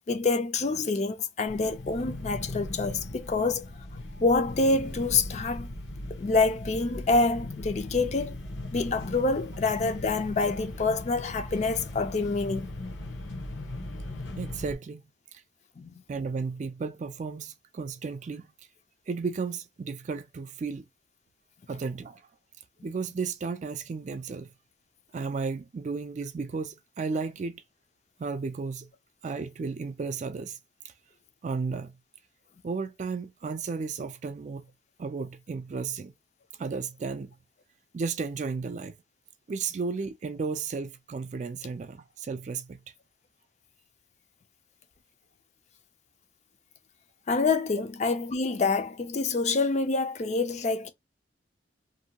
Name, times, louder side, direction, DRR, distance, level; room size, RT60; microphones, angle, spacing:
voice 1, 0.1-3.7 4.2-5.7 6.1-8.4 8.7-12.7 15.8-15.9 47.3-50.9, left 3 dB, 40° left, 0.4 m, -27 dB
sound 1, 1.5-14.8, left 2 dB, 75° left, 0.8 m, -38 dB
voice 2, 14.4-15.0 15.3-15.4 16.1-18.5 19.1-20.8 21.7-22.2 22.8-24.5 25.1-27.6 28.2-28.9 29.2-30.6 30.8-30.9 31.4-31.9 32.6-34.6 35.0-36.1 36.6-37.3 37.9-39.0 39.5-42.8, right 4 dB, 40° right, 0.3 m, -33 dB
2.6 x 2.2 x 2.8 m
head